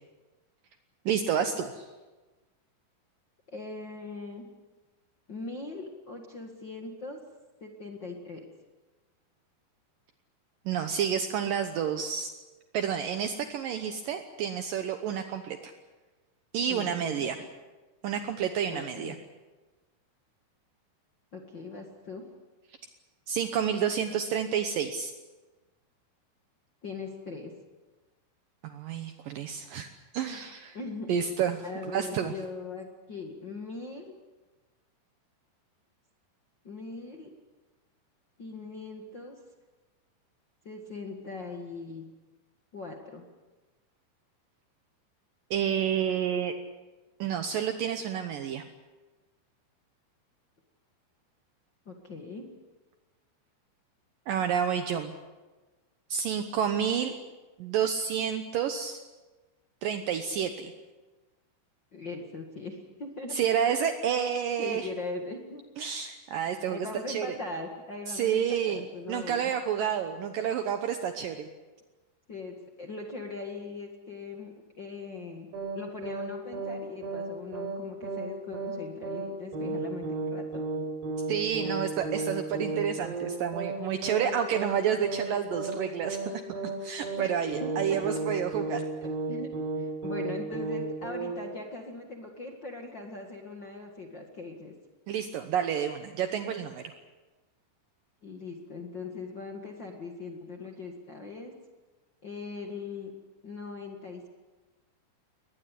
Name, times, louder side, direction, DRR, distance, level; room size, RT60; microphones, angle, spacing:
voice 1, 1.1-1.9 10.7-12.3 12.7-15.7 16.5-17.4 18.0-19.2 23.3-25.1 28.6-29.9 30.1-30.8 31.1-32.3 45.5-46.5 47.2-48.6 54.3-55.1 56.1-57.2 57.6-59.0 59.8-60.7 63.3-64.9 65.8-67.4 68.1-71.5 81.3-88.8 95.1-96.9, right 8 dB, 80° right, 7 dB, 1.9 m, -30 dB
voice 2, 3.5-4.4 5.3-7.2 7.6-8.5 16.7-17.5 18.7-19.1 21.3-22.2 26.8-27.5 30.7-31.1 31.6-34.1 36.6-37.3 38.4-39.3 40.6-42.0 42.7-43.2 51.8-52.5 61.9-63.4 64.6-65.6 66.7-69.5 72.3-75.5 75.7-80.6 87.2-88.4 89.3-89.5 89.8-94.7 98.2-101.5 102.2-103.1 103.4-104.3, left 3 dB, 70° left, 2 dB, 1.0 m, -40 dB
sound 1, 75.5-75.8 76.0-76.3 76.5-76.8 77.0-77.3 77.5-77.8 78.0-78.3 78.5-78.8 79.0-79.3 79.5-79.8 80.0-80.3 80.5-80.8 81.0-81.3 81.5-81.8 82.0-82.3 82.5-82.8 83.0-83.3 83.5-83.8 84.0-84.3 84.5-84.8 85.0-85.3 85.5-85.8 86.0-86.3 86.5-86.8 87.0-87.3 87.5-87.8 88.0-88.3 88.5-88.8 89.0-89.3 89.5-89.8 90.0-90.3 90.5-90.8 91.0-91.3, right 4 dB, 60° right, 9.2 m, -33 dB
22.5 x 20.0 x 8.4 m, 1.2 s
omnidirectional pair, 5.5 m